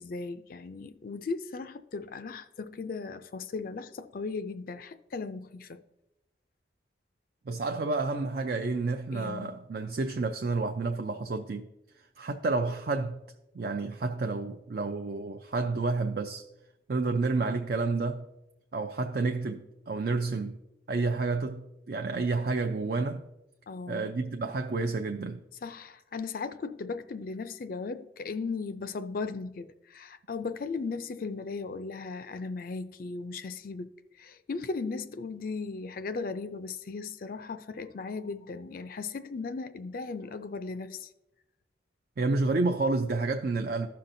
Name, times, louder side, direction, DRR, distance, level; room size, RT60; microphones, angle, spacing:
voice 1, 0.0-5.8 9.1-9.6 23.7-24.1 25.6-33.9 34.2-41.1, left 4 dB, 50° left, 0.4 m, -37 dB
voice 2, 7.5-11.7 12.2-13.2 13.5-16.5 16.9-18.3 18.7-20.6 20.9-23.2 23.9-25.4 42.2-43.9, right 3 dB, 55° right, 0.4 m, -30 dB
15.0 x 5.7 x 2.6 m
head